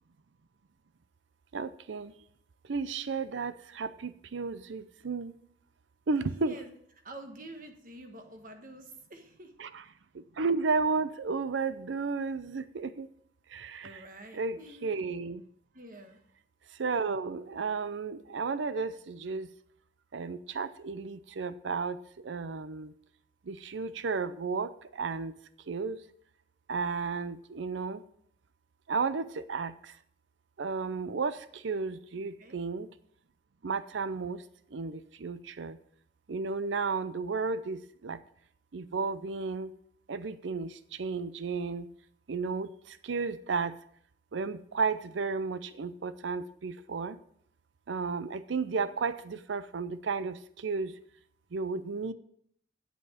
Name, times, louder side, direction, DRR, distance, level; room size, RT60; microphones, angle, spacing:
voice 1, 1.5-2.1 2.7-5.3 6.1-6.6 9.6-9.8 10.4-13.1 13.5-14.0 14.3-15.4 16.8-19.5 20.1-22.0 22.2-22.9 23.5-25.4 25.7-26.0 26.7-28.0 28.9-29.9 30.6-32.9 33.6-34.4 34.7-35.8 36.3-38.2 38.7-39.7 40.1-41.9 42.3-43.8 44.3-47.2 47.9-50.9 51.5-52.1, right 4 dB, 85° right, 14 dB, 0.5 m, -33 dB
voice 2, 6.1-6.7 7.0-9.5 13.8-14.9 15.7-16.2 32.4-32.6, right 1 dB, 50° right, 5 dB, 1.3 m, -48 dB
8.3 x 7.6 x 5.0 m, 0.65 s
head